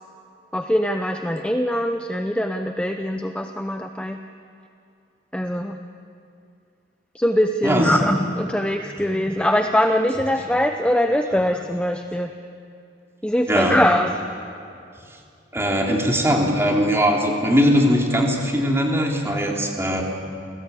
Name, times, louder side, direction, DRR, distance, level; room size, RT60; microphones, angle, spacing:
voice 1, 0.5-4.2 5.3-5.8 7.1-12.3 13.2-14.1, left 1 dB, 5° left, 5 dB, 0.7 m, -22 dB
voice 2, 7.6-8.0 13.5-13.8 15.5-20.0, equal, 15° right, -1 dB, 3.4 m, -20 dB
28.5 x 18.0 x 8.5 m, 2.6 s
head